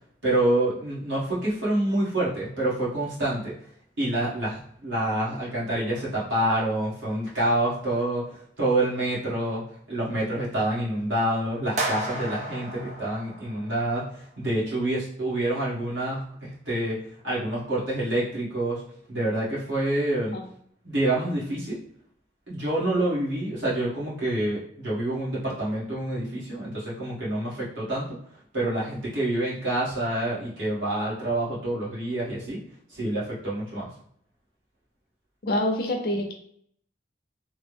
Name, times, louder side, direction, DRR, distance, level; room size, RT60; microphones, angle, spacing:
voice 1, 0.2-3.5 4.0-8.3 8.6-18.8 19.1-20.3 20.8-21.8 22.5-28.2 28.5-32.6 32.9-33.9, right 1 dB, 85° right, -7 dB, 1.5 m, -27 dB
sound 1, 11.8-14.0, right 2 dB, 40° right, 0.5 m, -33 dB
voice 2, 35.4-36.3, left 1 dB, 55° left, 1 dB, 0.6 m, -26 dB
3.3 x 2.1 x 3.3 m, 0.65 s
head